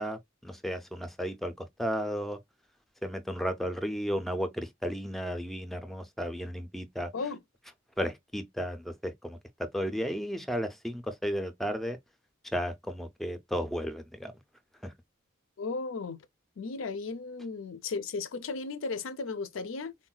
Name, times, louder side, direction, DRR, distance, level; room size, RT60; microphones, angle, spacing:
voice 1, 0.0-2.4 3.0-7.1 8.0-12.0 12.5-14.3 14.8-14.9, equal, ahead, 0.4 m, -34 dB
voice 2, 15.6-16.2 16.6-19.9, left 4 dB, 80° left, 0.5 m, -35 dB
3.8 x 2.1 x 2.2 m
head